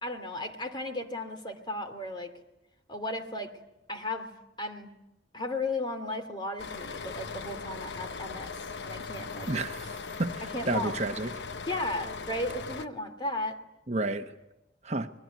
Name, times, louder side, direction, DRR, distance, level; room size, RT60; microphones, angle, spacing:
voice 1, 0.0-2.3 2.9-3.5 3.9-4.3 4.6-4.9 5.3-8.5 8.8-9.5 10.4-10.9 11.6-13.6, left 2 dB, 25° left, 2.6 m, -35 dB
sound 1, 6.6-12.9, left 5 dB, 85° left, 0.9 m, -39 dB
voice 2, 9.5-9.9 10.2-11.3 13.9-14.3 14.8-15.1, right 2 dB, 40° right, 1.1 m, -30 dB
29.0 x 21.5 x 9.5 m
head